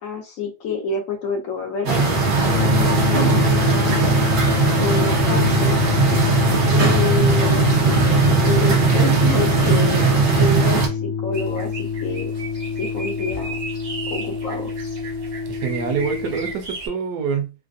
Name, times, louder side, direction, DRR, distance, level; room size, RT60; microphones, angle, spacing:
voice 1, 0.0-4.2 4.8-5.8 6.7-8.0 8.4-12.3 12.8-13.6 14.1-14.7, left 4 dB, 70° left, 0.8 m, -28 dB
sound 1, 1.8-10.9, right 4 dB, 90° right, 0.4 m, -18 dB
sound 2, 2.5-16.5, left 9 dB, 90° left, 1.3 m, -25 dB
sound 3, 11.3-16.9, right 3 dB, 45° right, 0.6 m, -35 dB
voice 2, 15.5-17.5, right 6 dB, 70° right, 1.1 m, -26 dB
3.2 x 2.4 x 2.6 m
omnidirectional pair, 2.0 m